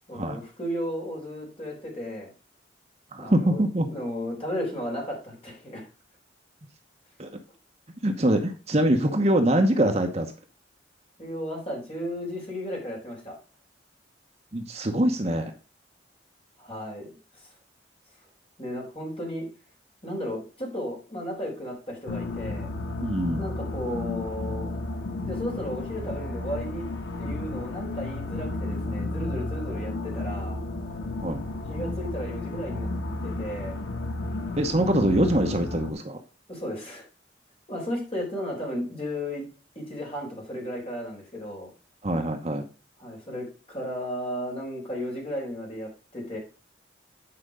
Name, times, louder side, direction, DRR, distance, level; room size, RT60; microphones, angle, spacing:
voice 1, 0.1-2.3 3.2-3.6 3.9-5.9 11.2-13.4 16.6-17.2 18.6-19.5 20.0-22.7 23.4-24.7 25.2-26.8 27.2-30.6 31.7-32.9 33.2-33.8 36.5-37.1 37.7-39.4 39.8-41.7 43.0-46.4, equal, 30° left, -1 dB, 3.9 m, -34 dB
voice 2, 3.1-3.9 7.2-7.3 8.0-10.3 14.5-15.5 23.0-23.5 31.2-31.4 34.6-36.2 42.0-42.7, right 1 dB, 35° right, 5 dB, 0.9 m, -24 dB
sound 1, 22.1-35.9, left 2 dB, 80° left, 1.0 m, -32 dB
8.9 x 5.1 x 4.9 m, 0.34 s
head